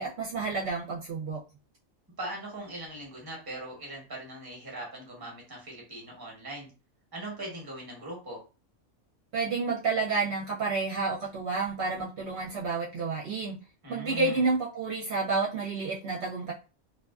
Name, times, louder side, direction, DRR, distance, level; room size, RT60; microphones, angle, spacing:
voice 1, 0.0-1.4 9.3-13.6 13.9-16.5, right 4 dB, 65° right, -5 dB, 0.8 m, -30 dB
voice 2, 2.2-6.7 7.1-8.4 13.8-14.5, right 1 dB, 20° right, -2 dB, 0.8 m, -40 dB
2.4 x 2.4 x 2.3 m, 0.32 s
omnidirectional pair, 1.3 m